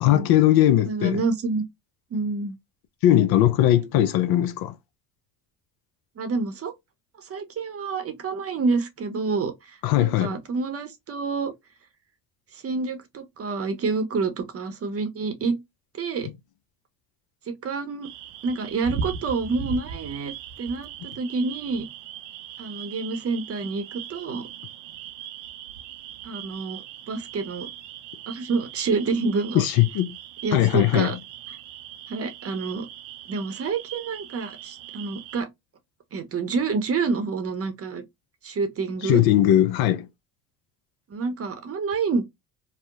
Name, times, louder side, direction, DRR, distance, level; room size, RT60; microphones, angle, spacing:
voice 1, 0.0-1.2 3.0-4.8 9.8-10.4 16.2-16.3 29.5-30.2 30.5-31.2 39.0-40.1, left 12 dB, 65° left, 0.5 m, -19 dB
voice 2, 0.9-1.6 2.1-2.6 6.2-6.7 7.2-11.5 12.5-15.6 16.0-16.3 17.5-18.1 18.4-21.9 22.6-24.5 26.2-26.8 27.1-27.7 28.3-29.6 30.4-31.2 32.1-32.9 33.3-35.5 36.1-38.0 38.4-39.2 41.1-42.2, right 4 dB, 35° right, 0.7 m, -28 dB
sound 1, 18.0-35.4, right 7 dB, 85° right, 0.5 m, -39 dB
2.8 x 2.1 x 2.3 m
supercardioid pair, 80°, 41 cm